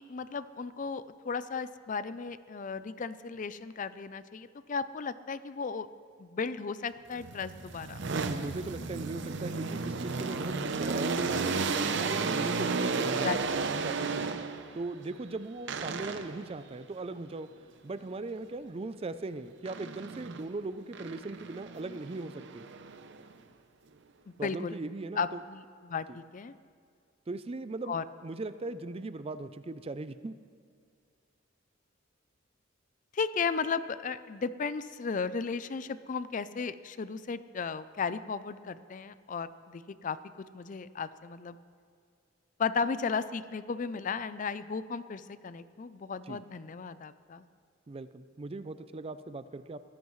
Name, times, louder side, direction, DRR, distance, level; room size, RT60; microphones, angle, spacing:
voice 1, 0.0-5.9 6.2-8.0 13.2-13.4 24.4-24.8 25.2-26.5 27.9-28.0 33.1-40.2 40.5-41.6 42.6-47.4, left 5 dB, 40° left, 14 dB, 0.4 m, -35 dB
sound 1, 7.1-14.8 15.7-16.5 19.6-20.5 20.9-23.3, right 4 dB, 60° right, 0.7 m, -33 dB
voice 2, 8.2-13.4 13.8-14.3 14.7-17.5 17.8-22.7 24.4-25.4 26.1-26.2 27.3-30.4 46.3-46.4 47.9-49.8, right 3 dB, 30° right, 12 dB, 0.4 m, -39 dB
22.5 x 15.0 x 3.2 m, 2.2 s
head